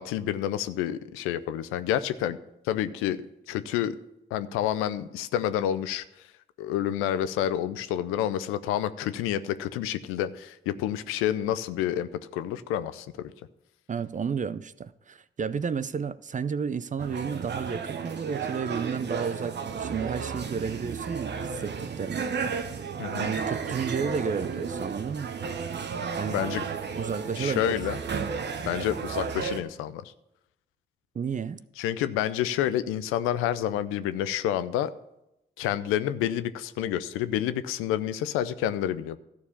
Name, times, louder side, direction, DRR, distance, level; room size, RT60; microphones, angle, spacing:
voice 1, 0.0-2.4 2.6-3.2 3.5-4.0 4.3-6.0 6.6-13.3 23.0-23.3 26.3-26.6 27.4-28.0 28.7-30.1 31.8-34.9 35.6-39.2, left 11 dB, 90° left, 0.5 m, -29 dB
voice 2, 13.9-22.3 23.2-25.4 25.9-26.4 27.0-27.7 31.1-31.6, right 6 dB, 40° right, 0.6 m, -32 dB
sound 1, 17.0-29.6, right 6 dB, 55° right, 0.9 m, -33 dB
13.0 x 4.7 x 7.0 m
supercardioid pair, 45°, 21 cm